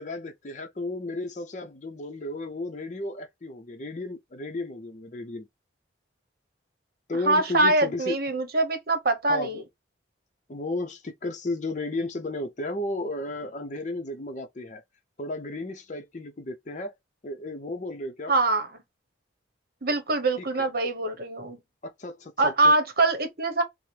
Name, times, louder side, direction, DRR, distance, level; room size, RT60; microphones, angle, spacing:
voice 1, 0.0-5.5 7.1-8.2 9.3-9.6 10.5-14.8 15.2-16.9 17.2-18.3 20.4-20.7 21.8-22.7, left 2 dB, 40° left, 0.6 m, -34 dB
voice 2, 7.2-9.6 18.3-18.7 19.8-21.6 22.4-23.6, right 2 dB, 50° right, 1.0 m, -23 dB
5.6 x 2.1 x 3.3 m
head